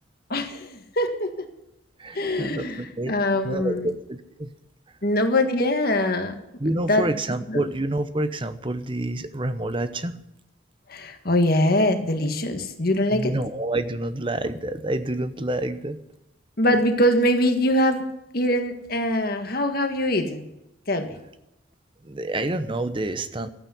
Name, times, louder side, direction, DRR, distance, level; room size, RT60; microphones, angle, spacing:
voice 1, 0.3-1.5 2.1-3.9 5.0-6.3 6.9-7.1 7.5-7.6 10.9-13.3 16.6-18.1 18.3-20.5 20.9-21.2, left 1 dB, 50° left, 6 dB, 1.7 m, -23 dB
voice 2, 2.0-3.1 3.4-4.5 6.6-10.2 13.1-16.0 22.0-23.5, right 1 dB, 25° right, 11 dB, 0.9 m, -28 dB
12.5 x 8.9 x 9.8 m, 0.86 s
head